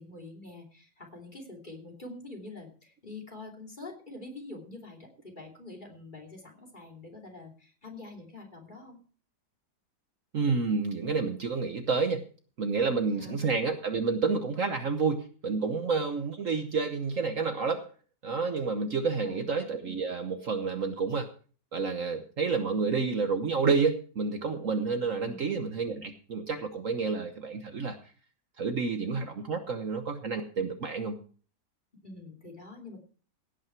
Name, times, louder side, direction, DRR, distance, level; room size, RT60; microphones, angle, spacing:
voice 1, 0.0-9.0 13.1-13.4 19.1-19.5 25.2-25.5 32.0-33.0, left 2 dB, 25° left, 3 dB, 3.1 m, -45 dB
voice 2, 10.3-12.2 12.6-17.9 18.2-21.3 21.7-28.0 28.6-31.2, right 4 dB, 50° right, 7 dB, 1.3 m, -29 dB
16.5 x 9.1 x 4.5 m, 0.41 s
omnidirectional pair, 1.8 m